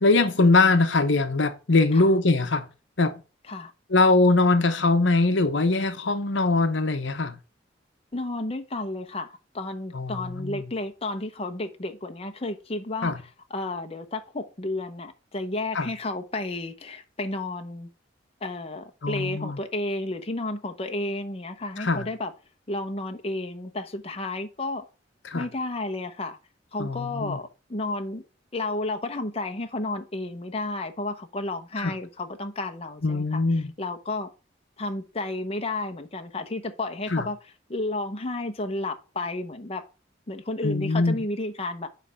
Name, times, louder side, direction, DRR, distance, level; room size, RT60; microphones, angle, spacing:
voice 1, 0.0-2.7 3.0-3.2 3.9-7.4 9.9-10.7 13.0-13.2 15.7-15.9 19.0-19.6 21.8-22.1 25.2-25.5 26.8-27.4 31.8-31.9 33.0-33.7 37.1-37.3 40.6-41.2, left 3 dB, 70° left, 0.9 m, -22 dB
voice 2, 8.1-13.1 13.5-17.9 18.4-22.3 22.7-24.9 25.3-26.4 26.7-28.2 28.5-33.4 33.8-34.3 34.8-37.4 37.7-39.8 40.3-41.9, left 2 dB, 30° left, 0.9 m, -32 dB
9.8 x 3.4 x 6.3 m
head